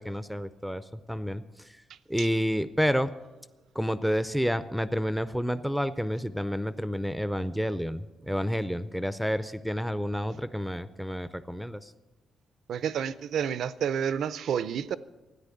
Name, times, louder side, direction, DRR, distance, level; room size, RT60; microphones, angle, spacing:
voice 1, 0.0-1.4 2.1-3.1 3.8-11.9, equal, ahead, 0.5 m, -29 dB
voice 2, 12.7-15.0, right 8 dB, 80° right, 0.6 m, -29 dB
13.5 x 9.9 x 8.4 m
cardioid pair, 130°, 0 cm